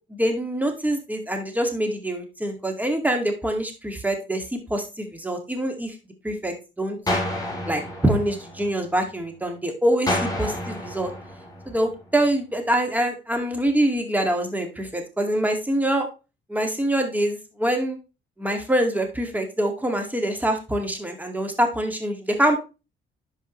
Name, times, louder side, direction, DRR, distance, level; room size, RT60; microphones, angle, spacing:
voice 1, 0.1-4.4 4.7-6.0 6.2-7.0 7.7-11.1 11.7-16.1 16.5-18.0 18.4-22.6, right 1 dB, 10° right, 4 dB, 2.2 m, -25 dB
sound 1, 7.1-9.1 10.1-12.1, left 1 dB, 20° left, 4.0 m, -30 dB
10.5 x 5.3 x 3.2 m, 0.29 s
cardioid pair, 90°, 20 cm